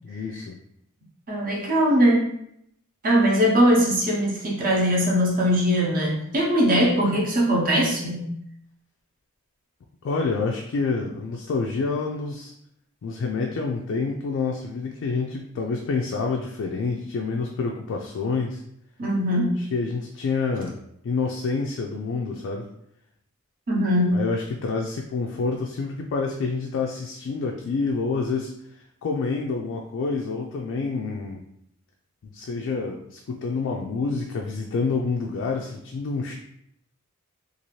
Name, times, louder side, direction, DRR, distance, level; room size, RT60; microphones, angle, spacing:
voice 1, 0.0-0.6 10.0-12.5 13.0-18.6 19.6-22.7 24.1-31.4 32.2-36.3, left 4 dB, 55° left, 1 dB, 0.3 m, -28 dB
voice 2, 1.3-2.3 3.0-8.3 19.0-19.6 23.7-24.2, equal, 40° right, -3 dB, 0.8 m, -21 dB
2.7 x 2.5 x 3.0 m, 0.75 s
head